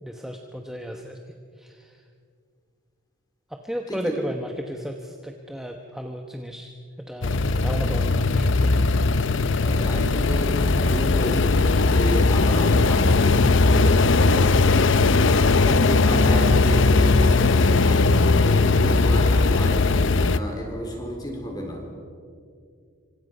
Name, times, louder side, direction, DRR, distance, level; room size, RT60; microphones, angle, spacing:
voice 1, 0.0-1.2 1.6-2.0 3.5-6.7 7.1-8.9, equal, ahead, 3 dB, 1.0 m, -34 dB
sound 1, 7.2-20.4, left 3 dB, 65° left, 0.7 m, -19 dB
voice 2, 9.6-14.5 15.1-18.1 18.4-19.8 20.3-21.8, equal, 20° left, 1 dB, 4.2 m, -31 dB
27.0 x 25.5 x 5.4 m, 2.3 s
head